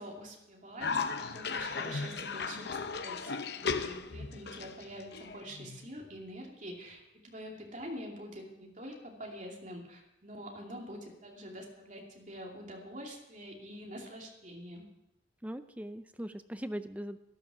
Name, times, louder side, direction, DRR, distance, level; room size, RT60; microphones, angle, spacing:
voice 1, 0.0-14.9, equal, 40° right, 0 dB, 2.6 m, -46 dB
Cough, 0.8-5.9, left 4 dB, 55° left, 0.7 m, -36 dB
voice 2, 15.4-17.2, equal, 5° right, 11 dB, 0.5 m, -40 dB
12.5 x 12.0 x 6.1 m, 0.92 s
head